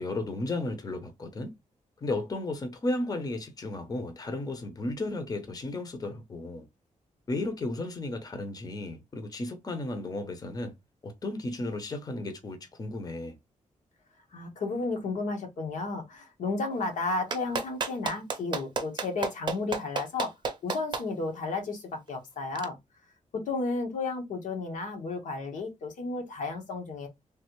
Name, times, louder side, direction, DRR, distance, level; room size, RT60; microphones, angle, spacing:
voice 1, 0.0-1.5 2.0-6.7 7.3-10.7 11.0-13.4, left 2 dB, 30° left, 0.7 m, -34 dB
voice 2, 14.3-20.3 20.6-22.8 23.5-27.1, left 3 dB, 85° left, 1.1 m, -33 dB
Clapping, 17.3-21.0 22.6-22.7, right 4 dB, 35° right, 0.6 m, -31 dB
3.3 x 2.5 x 2.9 m
wide cardioid pair, 115°, 13 cm